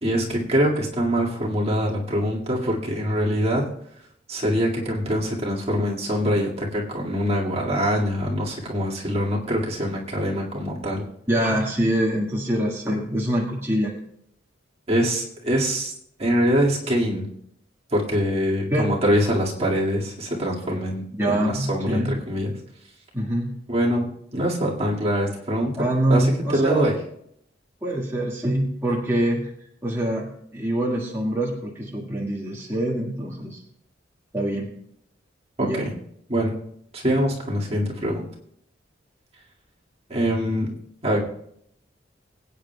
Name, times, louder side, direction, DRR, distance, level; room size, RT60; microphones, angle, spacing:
voice 1, 0.0-3.6 4.3-11.0 14.9-15.9 16.2-17.2 17.9-22.5 23.7-27.0 35.6-35.9 36.3-36.5 36.9-38.2 40.1-40.7 41.0-41.2, equal, 35° right, -3 dB, 2.1 m, -24 dB
voice 2, 11.3-13.9 18.7-18.9 21.2-22.1 23.1-23.5 25.8-26.9 27.8-29.5 29.8-33.6 34.3-34.7 35.6-35.8, right 1 dB, 15° right, -4 dB, 1.7 m, -24 dB
22.5 x 9.1 x 2.3 m, 0.71 s
head